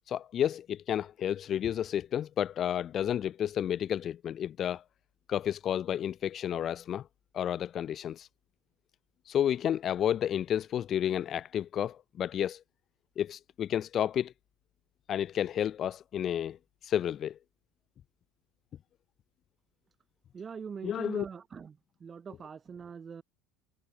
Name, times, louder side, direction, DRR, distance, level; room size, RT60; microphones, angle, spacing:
voice 1, 0.1-4.8 5.3-7.1 7.3-8.3 9.3-12.6 13.2-14.3 15.1-16.6 16.8-17.4 20.8-21.2, left 10 dB, 40° left, 0.7 m, -31 dB
voice 2, 20.3-23.2, right 6 dB, 30° right, 3.9 m, -43 dB
figure-of-eight pair, 65°, 0 cm